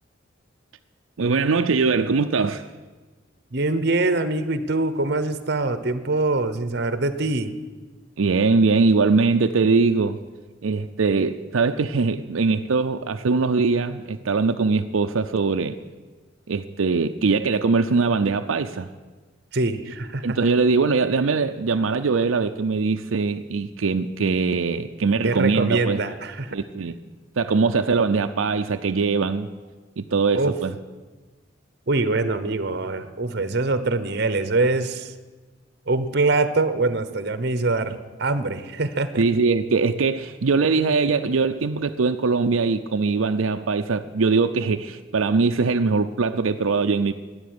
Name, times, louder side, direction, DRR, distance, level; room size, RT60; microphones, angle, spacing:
voice 1, 1.2-2.6 8.2-10.2 10.6-15.7 16.5-18.9 20.2-26.0 26.5-27.0 27.4-29.5 30.0-30.7 39.2-47.1, right 4 dB, 90° right, 7 dB, 0.6 m, -21 dB
voice 2, 3.5-7.5 19.5-20.4 25.2-26.6 30.3-30.5 31.9-35.1 35.9-39.2, right 3 dB, 55° right, 12 dB, 1.0 m, -24 dB
13.5 x 9.8 x 9.6 m, 1.3 s
head